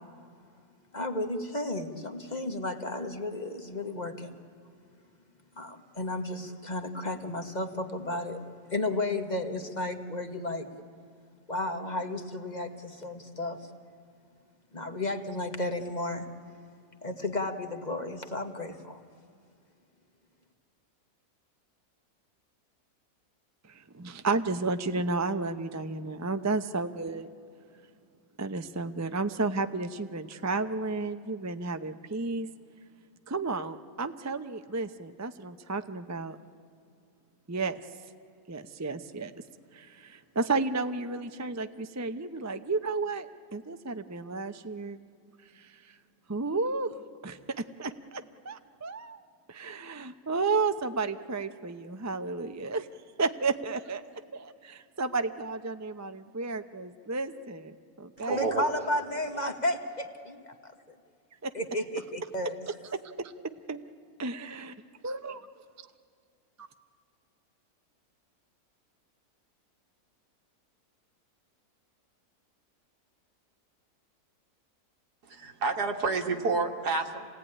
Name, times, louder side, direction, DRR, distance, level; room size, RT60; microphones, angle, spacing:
voice 1, 0.9-4.3 5.6-8.4 8.7-10.7 11.5-13.7 14.7-16.3 17.0-19.0 58.2-60.7 61.5-62.5, left 1 dB, 30° left, 6 dB, 1.5 m, -33 dB
voice 2, 23.7-27.3 28.4-32.5 33.3-36.4 37.5-37.8 38.5-39.3 39.7-45.0 45.6-45.7 46.3-46.9 47.2-49.2 49.5-52.9 53.2-54.0 54.3-58.5 61.4-61.5 62.9-63.3 63.7-63.8 64.2-64.7 65.0-65.5, right 3 dB, 20° right, 9 dB, 0.4 m, -32 dB
voice 3, 58.2-58.8 75.3-77.3, right 3 dB, 85° right, 5 dB, 2.1 m, -29 dB
27.0 x 18.0 x 9.9 m, 2.4 s
omnidirectional pair, 1.7 m